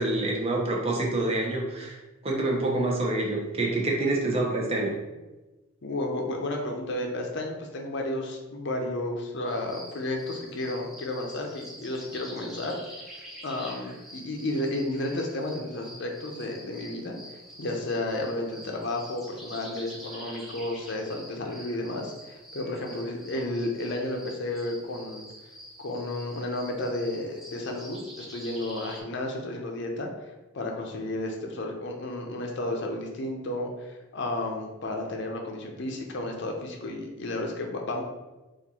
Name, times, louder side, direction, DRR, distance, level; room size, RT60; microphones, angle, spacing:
voice 1, 0.0-2.0 2.2-5.0, right 2 dB, 30° right, -1 dB, 0.8 m, -27 dB
voice 2, 5.8-12.8 13.1-17.2 17.6-25.2 25.8-30.1 30.5-38.0, left 1 dB, 60° left, 2 dB, 0.6 m, -32 dB
sound 1, 9.4-29.0, equal, ahead, 0.8 m, -46 dB
4.3 x 2.5 x 4.2 m, 1.1 s
head